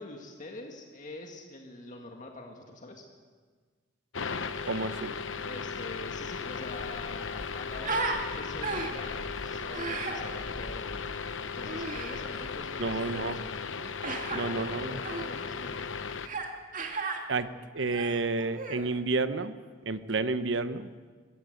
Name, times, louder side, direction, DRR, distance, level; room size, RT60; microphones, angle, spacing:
voice 1, 0.0-3.0 5.5-13.8 14.3-15.9, left 2 dB, 45° left, 2 dB, 1.9 m, -45 dB
sound 1, 4.1-16.3, left 5 dB, 85° left, 0.9 m, -36 dB
voice 2, 4.6-5.1 12.8-13.4 14.3-15.0 17.3-19.5 19.9-20.9, right 3 dB, 70° right, 12 dB, 0.9 m, -30 dB
Human voice, 6.2-6.3 6.6-8.2 8.6-9.1 9.7-10.2 11.7-12.2 14.0-14.4 15.0-15.3 16.2-16.5 16.7-17.2 17.8-18.9, right 3 dB, 45° right, 2.4 m, -35 dB
sound 2, 6.5-13.5, equal, 10° left, 5.9 m, -49 dB
22.5 x 16.5 x 8.0 m, 1.5 s
head